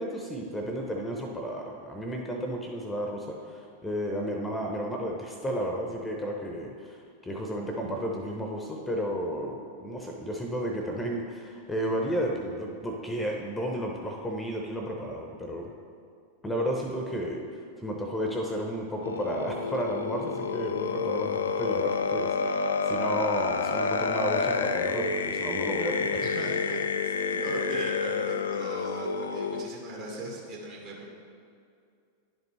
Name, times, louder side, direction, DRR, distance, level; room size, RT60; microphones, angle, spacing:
voice 1, 0.0-7.0 7.2-15.7 16.4-26.2, equal, 10° left, 1 dB, 0.7 m, -32 dB
sound 1, 19.0-29.6, left 5 dB, 70° left, 0.3 m, -29 dB
voice 2, 26.2-31.1, right 2 dB, 45° right, -2 dB, 1.7 m, -39 dB
10.5 x 5.1 x 3.1 m, 2.4 s
figure-of-eight pair, 90°, 0 cm